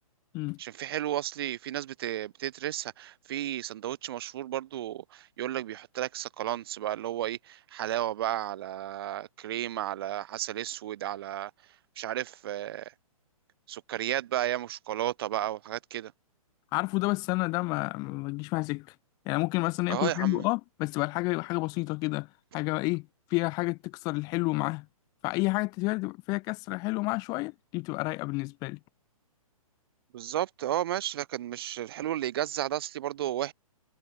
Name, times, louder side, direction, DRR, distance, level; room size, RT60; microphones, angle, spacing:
voice 1, 0.6-11.5 12.0-12.9 13.7-16.1 19.9-20.5 30.1-33.5, right 12 dB, 40° right, 5.1 m, -33 dB
voice 2, 16.7-18.9 19.3-22.3 22.5-24.9 25.2-28.8, left 24 dB, 20° left, 1.8 m, -30 dB
hypercardioid pair, 165°, 19 cm